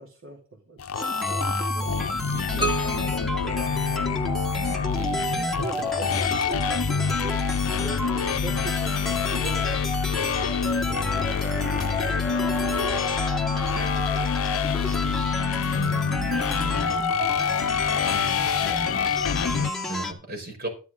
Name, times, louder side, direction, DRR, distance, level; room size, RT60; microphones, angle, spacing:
voice 1, 0.0-2.7 3.2-4.3 4.5-10.4 10.8-13.2 13.7-15.9 16.6-16.9 17.5-19.7, right 2 dB, 70° right, -1 dB, 2.8 m, -43 dB
sound 1, 0.8-19.7, left 7 dB, 90° left, 0.5 m, -27 dB
sound 2, 0.9-20.1, left 1 dB, ahead, 1.8 m, -30 dB
sound 3, 2.6-4.5, right 2 dB, 25° right, 2.4 m, -32 dB
voice 2, 5.0-5.3 15.7-16.1 19.9-20.7, right 2 dB, 45° right, 1 dB, 5.2 m, -36 dB
13.0 x 10.5 x 3.9 m, 0.35 s
head